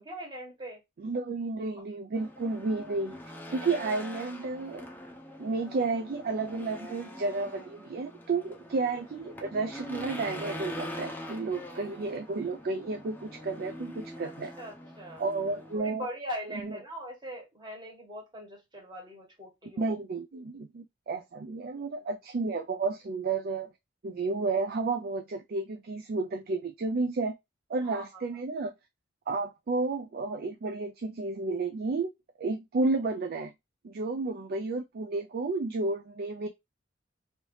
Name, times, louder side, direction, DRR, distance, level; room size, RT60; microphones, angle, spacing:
voice 1, 0.0-0.8 14.2-15.2 15.7-19.9 21.7-22.0 27.8-28.0, equal, 25° right, 1.5 m, -41 dB
voice 2, 1.0-3.2 3.5-4.9 5.4-14.5 15.2-16.1 16.5-16.8 19.8-23.7 24.0-27.3 27.7-28.7 29.3-32.1 32.4-33.5 33.8-36.5, right 3 dB, 50° right, 0.4 m, -32 dB
Race car auto racing / Engine, 2.1-15.8, left 1 dB, 10° left, 0.6 m, -43 dB
3.2 x 2.7 x 3.0 m
head